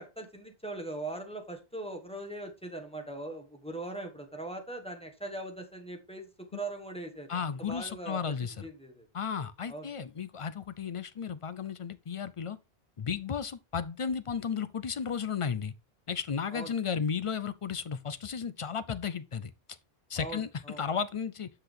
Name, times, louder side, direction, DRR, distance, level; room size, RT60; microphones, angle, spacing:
voice 1, 0.0-9.1 9.7-9.9 16.5-16.7 20.1-20.9, right 2 dB, 5° left, 1.4 m, -41 dB
voice 2, 7.3-8.7 9.1-12.6 13.0-15.7 16.1-19.5 20.1-20.5 20.8-21.5, left 6 dB, 50° left, 0.4 m, -34 dB
8.0 x 6.0 x 3.4 m
omnidirectional pair, 1.1 m